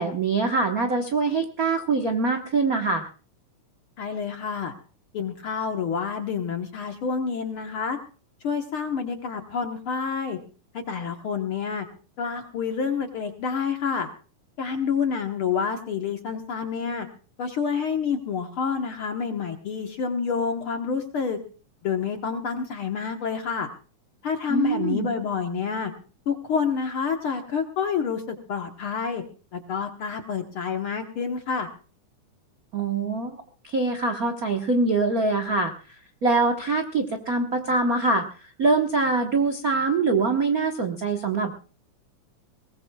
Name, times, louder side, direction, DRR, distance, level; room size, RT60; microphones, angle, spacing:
voice 1, 0.0-3.1 24.5-25.1 32.7-33.4 33.6-35.7 36.2-41.5, right 3 dB, 55° right, 4 dB, 0.9 m, -24 dB
voice 2, 4.0-4.7 5.1-8.0 8.4-10.4 10.7-11.9 12.2-14.1 14.6-17.1 17.4-21.4 21.8-23.7 24.2-25.9 26.3-29.2 29.5-31.7, left 6 dB, 55° left, 4 dB, 1.7 m, -28 dB
22.0 x 19.5 x 2.3 m, 0.36 s
omnidirectional pair, 3.7 m